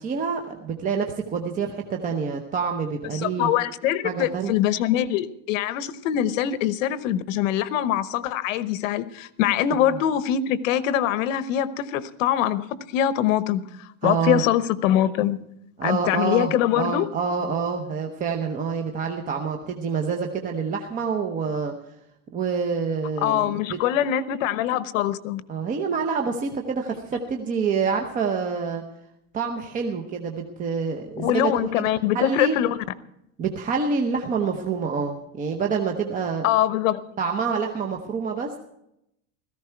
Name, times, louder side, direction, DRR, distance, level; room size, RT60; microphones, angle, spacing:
voice 1, 0.0-3.5 4.0-4.5 9.8-10.0 14.0-14.4 15.8-21.7 22.3-23.6 25.5-28.8 29.3-31.9 32.1-32.6 33.4-36.5 37.2-38.6, right 5 dB, 20° right, 0.9 m, -27 dB
voice 2, 3.1-12.7 12.9-15.4 15.8-17.1 23.2-25.4 31.2-32.8 36.4-37.0, left 11 dB, 75° left, 1.1 m, -23 dB
16.5 x 14.5 x 4.5 m
supercardioid pair, 165°, 39 cm